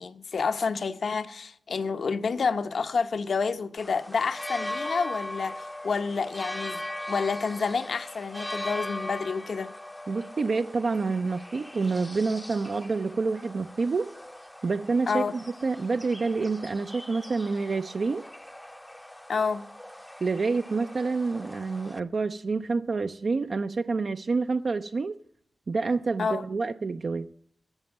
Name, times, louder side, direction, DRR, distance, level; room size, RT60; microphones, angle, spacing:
voice 1, 0.0-6.8 7.1-9.7 15.1-15.3 19.3-19.6 26.2-26.4, left 5 dB, 70° left, 0.8 m, -29 dB
sound 1, 3.8-22.0, left 1 dB, 5° left, 0.6 m, -40 dB
voice 2, 10.1-14.1 14.6-18.2 20.2-25.2 25.7-27.3, right 4 dB, 55° right, 0.5 m, -28 dB
12.5 x 7.8 x 9.2 m
wide cardioid pair, 130°, 0 cm